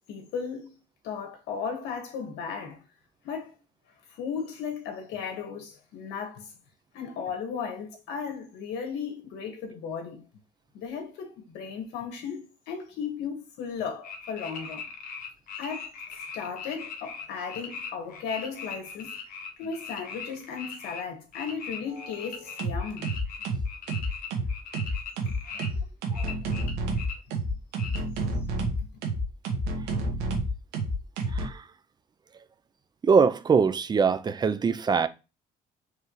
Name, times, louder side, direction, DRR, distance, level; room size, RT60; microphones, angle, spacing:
voice 1, 0.1-0.8 1.0-2.8 3.2-3.5 4.1-6.5 6.9-10.2 10.7-14.9 15.6-15.9 16.3-19.1 19.6-23.1 25.3-25.7 26.2-26.4 26.6-26.7 27.9-28.1 28.8-28.9, left 6 dB, 85° left, 1.6 m, -36 dB
sound 1, 14.0-21.0 21.3-25.7 26.1-27.1 27.8-28.0, left 6 dB, 55° left, 1.3 m, -40 dB
sound 2, 21.9-22.2 22.6-31.5, right 2 dB, 90° right, 1.3 m, -29 dB
voice 2, 31.3-31.7 33.0-35.1, right 5 dB, 25° right, 0.5 m, -23 dB
4.7 x 3.4 x 3.1 m
cardioid pair, 110°, 17 cm